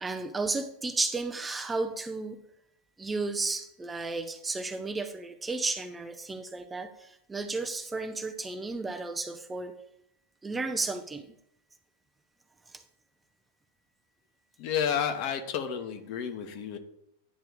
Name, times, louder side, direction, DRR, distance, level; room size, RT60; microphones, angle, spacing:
voice 1, 0.0-2.4 3.0-9.7 10.4-11.3 12.7-12.8, right 3 dB, 10° right, 7 dB, 0.6 m, -33 dB
voice 2, 14.6-16.8, left 8 dB, 45° left, 6 dB, 1.0 m, -31 dB
9.9 x 3.4 x 6.9 m, 0.76 s
figure-of-eight pair, 90°, 0 cm